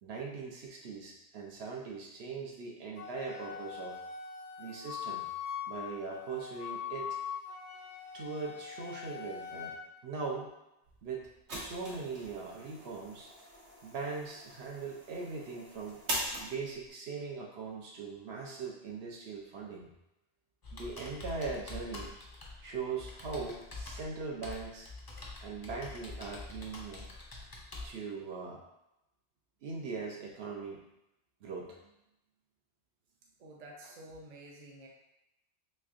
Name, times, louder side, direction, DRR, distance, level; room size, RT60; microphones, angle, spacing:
voice 1, 0.0-4.0 4.6-5.2 5.7-7.2 8.1-9.7 10.0-10.5 11.0-13.3 13.8-16.0 16.4-19.9 20.7-22.2 22.6-24.9 25.4-27.1 27.8-28.6 29.6-30.8 31.4-31.9, right 4 dB, 75° right, -1 dB, 0.9 m, -40 dB
Wind instrument woodwind instrument, 3.0-9.8, left 8 dB, 75° left, 0.8 m, -42 dB
sound 1, 10.8-16.9, right 1 dB, 90° right, 1.3 m, -42 dB
Computer keyboard, 20.6-27.9, left 2 dB, 35° left, 0.3 m, -46 dB
voice 2, 33.4-34.9, right 1 dB, 45° right, -1 dB, 0.6 m, -50 dB
3.4 x 3.2 x 2.4 m, 0.89 s
omnidirectional pair, 1.1 m